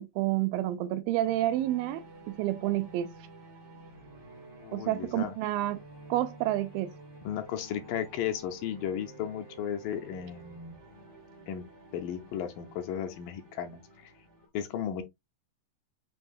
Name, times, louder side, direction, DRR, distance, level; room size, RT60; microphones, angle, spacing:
voice 1, 0.0-3.1 4.7-5.8 6.1-6.9, right 14 dB, 85° right, 2.4 m, -29 dB
sound 1, 1.2-14.5, right 2 dB, 65° right, 0.6 m, -51 dB
voice 2, 4.6-5.3 7.2-10.8 11.5-11.7 11.9-14.1 14.5-15.0, left 9 dB, 80° left, 2.2 m, -35 dB
7.7 x 2.7 x 2.3 m
omnidirectional pair, 4.1 m